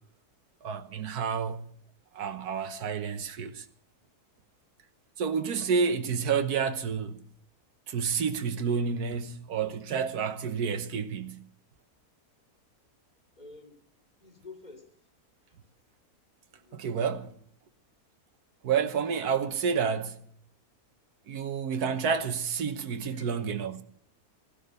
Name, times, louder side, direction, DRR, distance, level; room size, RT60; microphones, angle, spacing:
voice 1, 0.6-1.7 2.1-3.7 5.2-7.2 7.9-11.4 16.7-17.3 18.6-20.2 21.3-23.8, right 6 dB, 75° right, 1.6 m, -29 dB
voice 2, 13.4-13.8 14.2-15.1 15.5-15.7 16.5-17.4 23.1-23.3, left 3 dB, 25° left, 3.0 m, -51 dB
16.5 x 12.0 x 6.8 m
omnidirectional pair, 1.7 m